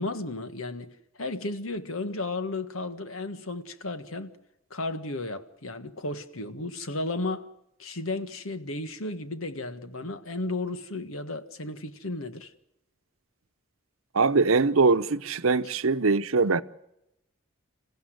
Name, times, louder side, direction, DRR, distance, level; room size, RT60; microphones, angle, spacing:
voice 1, 0.0-4.3 4.7-7.5 7.8-12.5, left 2 dB, 80° left, 1.6 m, -34 dB
voice 2, 14.1-16.6, right 4 dB, 75° right, 0.8 m, -22 dB
27.5 x 15.5 x 7.9 m
head